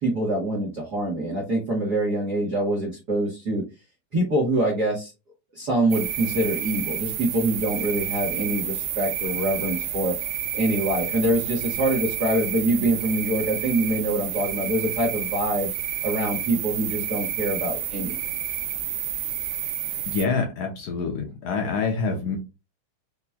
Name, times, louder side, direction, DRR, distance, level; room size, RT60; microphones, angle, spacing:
voice 1, 0.0-3.6 4.1-5.1 5.5-10.1 10.5-15.7 16.0-18.1, right 1 dB, 65° right, -3 dB, 1.0 m, -25 dB
sound 1, 5.9-20.3, right 10 dB, 85° right, 2.0 m, -30 dB
voice 2, 20.1-22.4, left 4 dB, 70° left, 2 dB, 1.7 m, -26 dB
5.7 x 2.3 x 2.2 m, 0.27 s
omnidirectional pair, 3.5 m